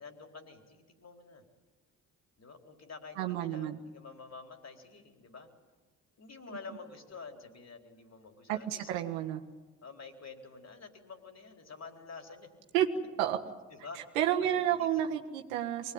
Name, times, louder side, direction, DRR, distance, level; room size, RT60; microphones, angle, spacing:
voice 1, 0.0-1.4 2.4-5.5 6.2-8.9 9.8-12.5 13.7-14.0 14.7-14.9, left 4 dB, 40° left, 4 dB, 4.2 m, -48 dB
voice 2, 3.2-3.8 8.5-9.4 12.7-12.9 13.2-13.4 14.1-15.9, right 11 dB, 85° right, 4 dB, 1.6 m, -30 dB
24.0 x 19.5 x 8.8 m, 1.3 s
hypercardioid pair, 50°, 39 cm